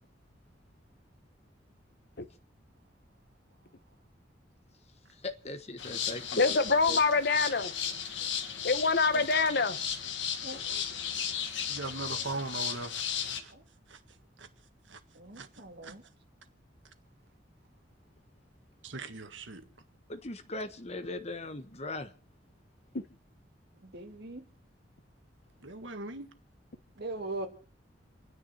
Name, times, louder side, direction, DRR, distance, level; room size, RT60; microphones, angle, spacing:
voice 1, 5.2-6.6 6.9-7.0 10.4-10.6 20.1-22.1, left 2 dB, 35° left, 1.3 m, -39 dB
sound 1, 5.8-13.4, left 8 dB, 80° left, 1.7 m, -35 dB
voice 2, 6.4-7.7 8.6-9.8, left 4 dB, 55° left, 1.1 m, -25 dB
voice 3, 11.6-13.1 13.4-13.5 13.9-14.0 14.4-14.5 14.9-15.0 15.4-16.0 18.8-19.7 25.6-26.3, right 3 dB, 90° right, 1.8 m, -40 dB
voice 4, 15.2-16.0 23.9-24.4 27.0-27.5, right 2 dB, 60° right, 2.2 m, -39 dB
28.5 x 10.0 x 4.3 m
head